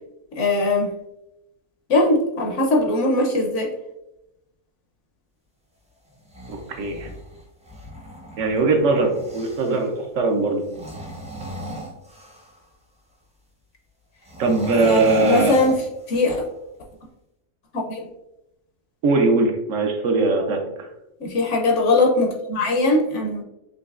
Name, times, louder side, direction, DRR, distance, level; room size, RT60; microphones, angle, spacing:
voice 1, 0.4-0.9 1.9-3.7 14.8-15.8 16.1-16.4 17.7-18.1 21.2-23.4, left 2 dB, 60° left, 1 dB, 0.9 m, -20 dB
sound 1, 6.1-9.9 10.6-12.6 14.2-16.5, right 1 dB, 10° right, 0.3 m, -35 dB
voice 2, 6.5-7.1 8.4-9.1 9.3-10.6 14.4-15.5 19.0-20.9, right 3 dB, 65° right, 3 dB, 1.0 m, -20 dB
5.3 x 2.9 x 2.4 m, 0.89 s
omnidirectional pair, 1.5 m